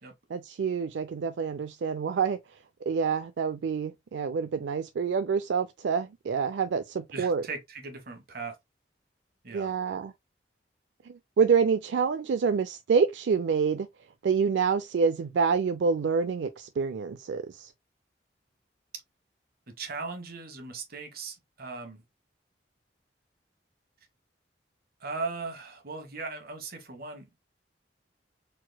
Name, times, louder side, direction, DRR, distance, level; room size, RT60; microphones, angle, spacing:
voice 1, 0.3-2.4 2.9-7.4 9.5-10.1 11.1-13.9 14.2-17.7, right 5 dB, 85° right, 0.4 m, -27 dB
voice 2, 7.1-8.6 9.4-9.7 19.7-22.0 25.0-27.3, right 4 dB, 60° right, 1.3 m, -38 dB
4.3 x 4.2 x 2.2 m
head